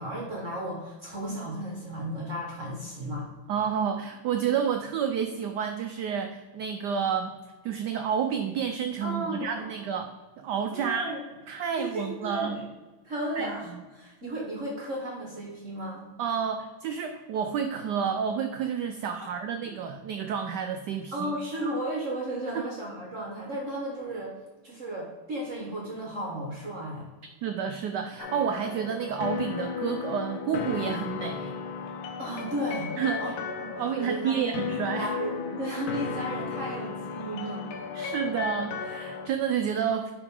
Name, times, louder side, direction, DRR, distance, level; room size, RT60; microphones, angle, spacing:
voice 1, 0.0-3.3 9.0-9.7 10.7-11.2 11.8-12.6 13.0-16.1 21.1-24.3 24.6-27.1 32.2-34.6 34.9-37.7, right 1 dB, 45° right, -2 dB, 1.3 m, -34 dB
voice 2, 3.5-7.4 7.6-10.1 10.4-11.1 11.5-12.5 13.4-13.8 16.2-21.3 22.5-22.6 27.4-31.6 33.0-33.2 33.8-35.1 37.9-40.1, right 7 dB, 75° right, 6 dB, 1.0 m, -30 dB
sound 1, 28.2-39.3, left 6 dB, 85° left, 1.6 m, -35 dB
10.5 x 4.0 x 3.6 m, 1.2 s
omnidirectional pair, 2.2 m